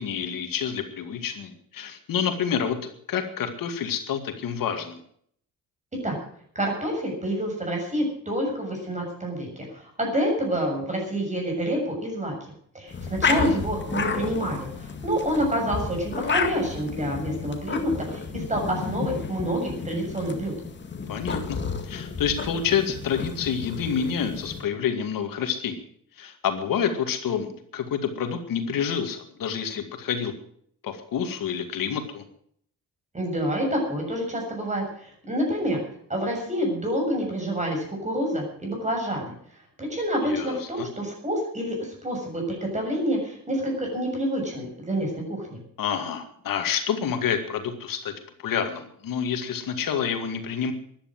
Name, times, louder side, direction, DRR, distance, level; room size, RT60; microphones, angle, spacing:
voice 1, 0.0-5.0 13.3-13.6 21.1-25.8 26.2-30.3 30.8-32.2 40.2-40.9 45.8-48.1 48.4-50.7, left 7 dB, 75° left, 6 dB, 2.2 m, -28 dB
voice 2, 6.6-12.4 12.7-20.5 33.1-35.8 36.1-39.3 39.8-45.6, equal, 20° right, 1 dB, 7.0 m, -28 dB
sound 1, 12.9-24.6, left 5 dB, 35° left, 2.0 m, -31 dB
13.5 x 11.5 x 7.7 m, 0.63 s
cardioid pair, 135°, 34 cm